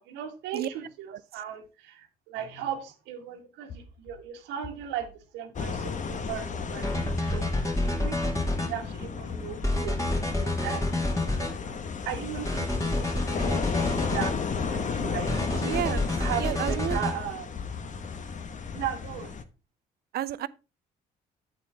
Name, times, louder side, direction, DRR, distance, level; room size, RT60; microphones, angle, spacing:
voice 1, 0.0-7.5 8.0-11.5 12.0-15.5 16.1-17.5 18.7-19.4, right 9 dB, 90° right, 1.8 m, -37 dB
sound 1, 3.7-7.1 7.4-9.9 10.2-14.6 14.9-17.4 17.7-18.5, left 4 dB, 80° left, 2.0 m, -46 dB
sound 2, 5.5-19.4, left 5 dB, 45° left, 1.2 m, -34 dB
sound 3, 6.8-8.7 9.6-11.5 12.5-14.3 15.3-17.2, left 1 dB, 20° left, 2.5 m, -28 dB
voice 2, 15.6-16.1 16.4-17.0 20.1-20.5, right 12 dB, 65° right, 0.6 m, -30 dB
8.5 x 7.6 x 3.5 m
supercardioid pair, 70°, 17 cm